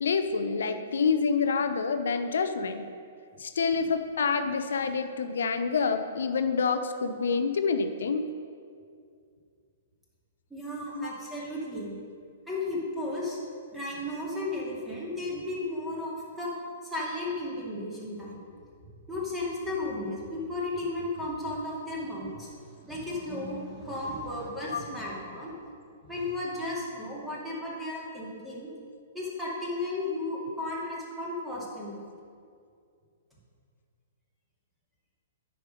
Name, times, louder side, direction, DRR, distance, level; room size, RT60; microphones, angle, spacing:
voice 1, 0.0-2.9 3.4-8.3 10.9-11.1 24.7-24.8, left 5 dB, 60° left, 9 dB, 0.6 m, -27 dB
voice 2, 10.5-11.9 12.5-13.4 13.7-16.5 16.8-18.4 18.8-25.5 26.0-28.7 29.1-32.0, left 2 dB, 5° right, -6 dB, 2.6 m, -34 dB
9.8 x 6.5 x 5.3 m, 2.3 s
figure-of-eight pair, 115°, 0 cm